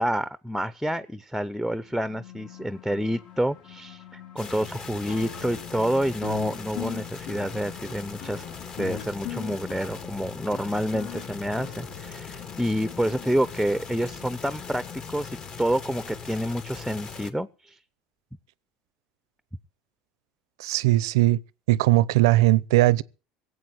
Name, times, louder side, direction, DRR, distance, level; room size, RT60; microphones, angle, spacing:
voice 1, 0.0-8.4 8.8-14.8 15.1-17.8, equal, ahead, 0.7 m, -28 dB
sound 1, 1.8-12.6, left 11 dB, 60° left, 3.1 m, -52 dB
sound 2, 4.4-17.3, left 6 dB, 40° left, 1.8 m, -40 dB
sound 3, 5.1-12.5, left 10 dB, 80° left, 4.4 m, -39 dB
voice 2, 20.6-21.4 21.7-23.0, right 16 dB, 85° right, 0.7 m, -19 dB
18.0 x 8.2 x 8.0 m
supercardioid pair, 110°, 2 cm